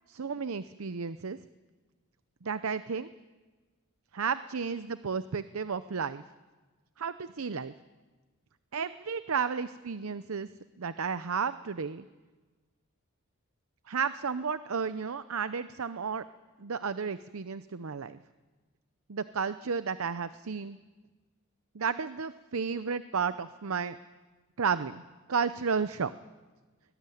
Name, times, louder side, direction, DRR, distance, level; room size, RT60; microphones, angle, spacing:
voice 1, 0.1-1.4 2.4-3.1 4.1-6.2 7.0-7.7 8.7-10.5 10.8-12.1 13.9-16.2 16.6-18.2 19.1-20.8 21.7-24.0 24.6-25.0 25.3-26.1, right 5 dB, 90° right, 13 dB, 0.7 m, -32 dB
23.0 x 19.0 x 9.3 m, 1.3 s
head